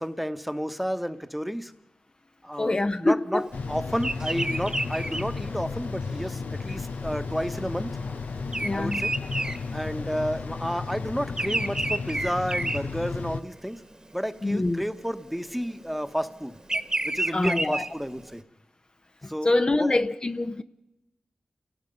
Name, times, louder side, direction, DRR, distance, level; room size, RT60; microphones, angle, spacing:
voice 1, 0.0-1.7 2.4-8.0 8.7-9.1 9.7-13.8 14.1-16.6 17.0-18.4 19.3-20.0, equal, ahead, 1.1 m, -31 dB
voice 2, 2.6-3.5 8.6-9.0 14.4-14.8 17.3-17.8 19.2-20.6, left 2 dB, 35° left, 0.7 m, -25 dB
sound 1, 3.5-13.4, left 4 dB, 85° left, 0.8 m, -34 dB
Bird vocalization bird call bird song, 4.0-10.4 10.7-13.5 14.0-14.4 15.3-18.3, right 2 dB, 30° right, 1.3 m, -31 dB
29.0 x 18.0 x 5.4 m
cardioid pair, 55°, 3 cm